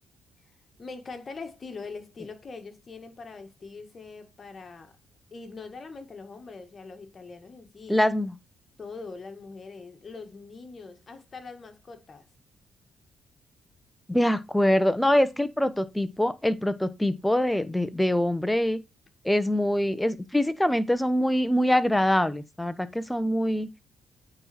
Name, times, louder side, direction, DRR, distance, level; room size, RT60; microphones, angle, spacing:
voice 1, 0.8-4.9 5.3-8.0 8.8-12.3, left 4 dB, 40° left, 1.7 m, -42 dB
voice 2, 7.9-8.3 14.1-18.8 19.2-23.7, left 1 dB, 5° left, 0.9 m, -24 dB
9.0 x 4.0 x 4.3 m
cardioid pair, 90°, 0 cm